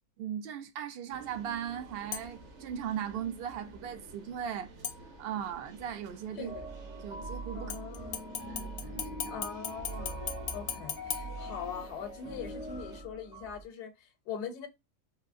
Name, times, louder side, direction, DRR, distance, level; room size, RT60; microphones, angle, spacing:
voice 1, 0.2-4.7 5.2-6.5 7.0-7.7 8.5-9.3, right 9 dB, 70° right, 0.5 m, -38 dB
sound 1, 1.1-13.0, right 2 dB, 50° right, 1.0 m, -52 dB
sound 2, 2.1-2.5 4.8-5.5 7.7-12.1 12.5-12.6, left 7 dB, 60° left, 0.7 m, -40 dB
sound 3, 6.4-13.6, right 1 dB, 10° right, 0.3 m, -42 dB
voice 2, 7.5-8.2 9.3-10.3 10.5-14.7, left 7 dB, 80° left, 1.1 m, -42 dB
3.8 x 2.7 x 2.5 m
omnidirectional pair, 1.7 m